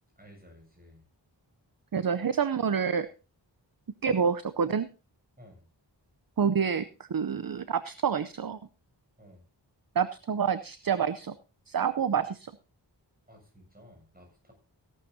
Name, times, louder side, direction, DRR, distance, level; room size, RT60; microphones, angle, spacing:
voice 1, 0.2-1.0 5.4-5.7 9.2-9.4 13.3-14.5, equal, 20° right, 1 dB, 7.4 m, -54 dB
voice 2, 1.9-3.1 4.0-4.9 6.4-8.6 10.0-11.4 11.7-12.5, right 7 dB, 50° right, 14 dB, 0.6 m, -28 dB
16.5 x 11.5 x 2.8 m, 0.31 s
wide cardioid pair, 50°, 44 cm